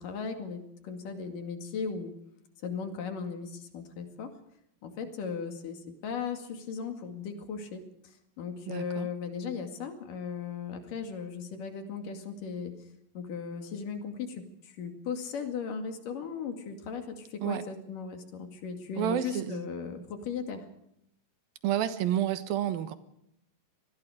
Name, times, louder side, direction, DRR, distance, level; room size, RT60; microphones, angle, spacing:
voice 1, 0.0-2.1 2.6-4.3 4.8-12.7 13.1-20.6, left 6 dB, 70° left, 5 dB, 3.8 m, -37 dB
voice 2, 8.7-9.1 17.4-17.6 19.0-19.7 21.6-23.0, right 11 dB, 85° right, 11 dB, 3.0 m, -30 dB
26.0 x 20.0 x 5.0 m, 0.78 s
omnidirectional pair, 4.1 m